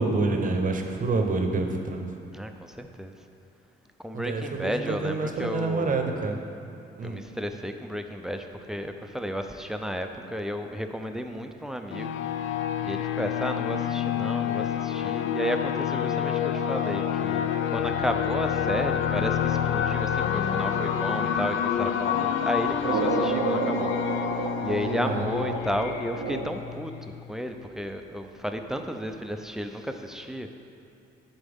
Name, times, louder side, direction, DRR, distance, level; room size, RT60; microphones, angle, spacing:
voice 1, 0.0-2.1 4.1-6.4 7.0-7.2 25.0-25.2, right 3 dB, 40° right, 4 dB, 0.8 m, -27 dB
voice 2, 2.3-3.2 4.0-6.3 7.0-12.2 12.8-26.9 27.3-30.5, equal, ahead, 5 dB, 0.4 m, -33 dB
sound 1, 11.9-27.2, left 9 dB, 75° left, 0.4 m, -28 dB
sound 2, 22.8-26.9, right 5 dB, 90° right, 0.6 m, -31 dB
11.0 x 4.1 x 3.5 m, 2.6 s
cardioid pair, 90°, 20 cm